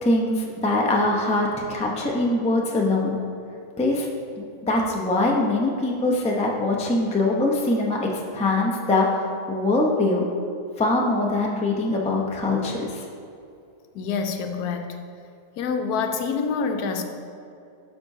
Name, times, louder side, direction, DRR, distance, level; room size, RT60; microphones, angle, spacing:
voice 1, 0.0-3.2 3.8-4.1 4.4-10.3 10.8-13.0, left 2 dB, 10° left, -1 dB, 0.4 m, -23 dB
voice 2, 13.9-15.0 15.6-17.0, left 5 dB, 85° left, 5 dB, 1.1 m, -26 dB
11.5 x 5.2 x 2.7 m, 2.6 s
omnidirectional pair, 1.6 m